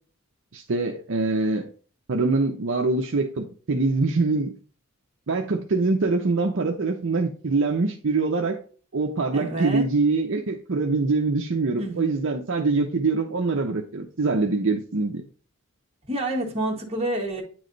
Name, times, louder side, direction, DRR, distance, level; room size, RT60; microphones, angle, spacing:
voice 1, 0.5-1.7 2.1-4.5 5.3-8.6 8.9-15.2, right 3 dB, 60° right, 2 dB, 0.7 m, -24 dB
voice 2, 9.3-9.8 11.8-12.0 16.1-17.4, right 1 dB, 30° right, 0 dB, 1.5 m, -28 dB
9.3 x 3.2 x 3.9 m, 0.41 s
head